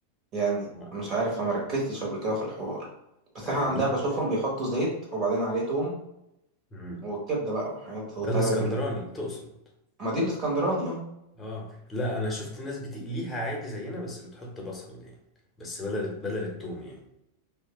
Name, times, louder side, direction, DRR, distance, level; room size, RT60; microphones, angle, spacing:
voice 1, 0.3-2.9 3.3-6.0 7.0-8.6 10.0-11.0, right 2 dB, 35° right, -3 dB, 1.0 m, -28 dB
voice 2, 3.4-4.0 6.7-7.0 8.2-9.5 11.4-15.1 15.6-17.0, left 1 dB, 15° left, 0 dB, 0.9 m, -33 dB
3.1 x 2.2 x 3.0 m, 0.85 s
figure-of-eight pair, 90°, 0 cm